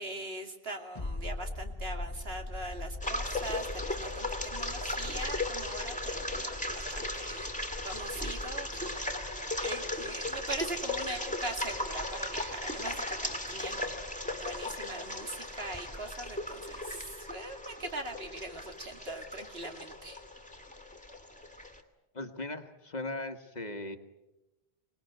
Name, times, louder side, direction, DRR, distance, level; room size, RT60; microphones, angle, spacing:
voice 1, 0.0-7.5 7.8-14.0 14.3-20.2, right 2 dB, 75° right, 5 dB, 2.7 m, -41 dB
sound 1, 1.0-12.3 12.6-12.7, left 2 dB, 25° left, 1.4 m, -43 dB
sound 2, 3.0-21.8, left 1 dB, 5° left, 2.2 m, -37 dB
voice 2, 22.1-24.0, left 2 dB, 45° left, 7 dB, 1.5 m, -38 dB
25.0 x 20.0 x 9.1 m, 1.0 s
omnidirectional pair, 1.0 m